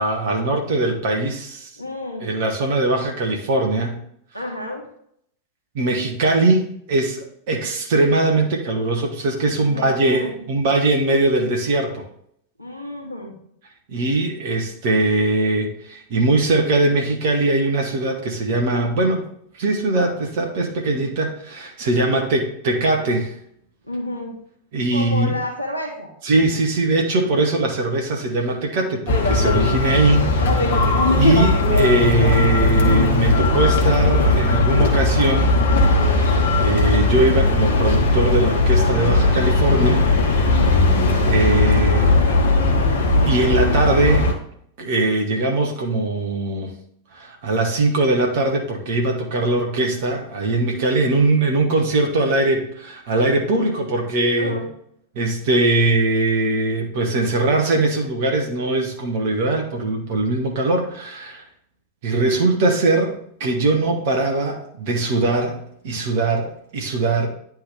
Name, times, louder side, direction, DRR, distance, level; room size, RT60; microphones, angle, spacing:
voice 1, 0.0-1.7 2.2-4.0 5.7-12.0 13.9-19.2 19.5-23.3 24.7-25.4 26.2-35.5 36.6-40.0 40.3-40.5 41.3-42.2 43.2-44.3 44.8-46.7 47.1-54.5 55.1-61.4 62.0-65.6 65.8-67.3, right 2 dB, 50° right, 2 dB, 1.1 m, -21 dB
voice 2, 1.8-2.3 4.3-4.8 9.6-10.4 12.6-13.4 22.0-22.3 23.8-24.3 24.9-26.1 29.5-29.9 40.5-40.9 53.5-53.7 54.4-54.7, left 1 dB, 90° right, -1 dB, 1.4 m, -31 dB
sound 1, 29.1-44.3, left 2 dB, 60° left, 1.0 m, -18 dB
9.7 x 3.5 x 3.4 m, 0.69 s
figure-of-eight pair, 90°, 0 cm